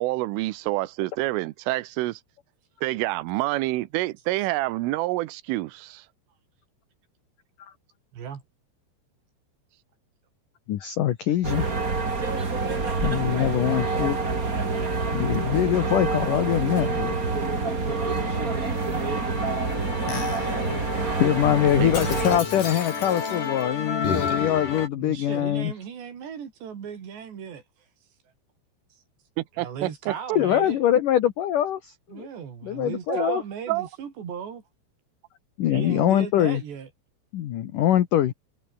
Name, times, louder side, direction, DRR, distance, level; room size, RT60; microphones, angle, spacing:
voice 1, 0.0-2.2 2.8-6.1 21.8-21.9 29.4-30.4 33.1-33.4 33.7-33.9, right 18 dB, 85° right, 3.5 m, -27 dB
voice 2, 10.7-11.7 13.0-14.2 15.1-17.1 21.2-25.7 30.4-32.3 32.6-33.4 35.6-36.6 37.3-38.3, left 11 dB, 75° left, 1.9 m, -23 dB
sound 1, 11.4-22.4, right 4 dB, 25° right, 2.4 m, -27 dB
Musical instrument, 13.7-24.9, left 5 dB, 40° left, 6.1 m, -34 dB
voice 3, 25.0-27.6 29.5-30.8 32.1-34.6 35.7-36.9, right 7 dB, 60° right, 5.6 m, -36 dB
omnidirectional pair, 5.6 m